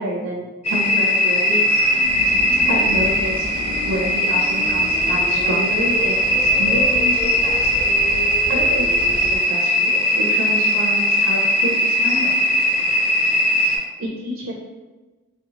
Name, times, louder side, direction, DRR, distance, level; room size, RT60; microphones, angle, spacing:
voice 1, 0.0-1.6 2.7-3.5 3.8-7.5 8.4-12.3 14.0-14.5, equal, 85° right, -3 dB, 0.5 m, -28 dB
sound 1, 0.6-13.8, equal, 35° left, 0.6 m, -19 dB
sound 2, 1.7-9.4, left 1 dB, 90° left, 0.5 m, -31 dB
2.8 x 2.1 x 2.8 m, 1.2 s
head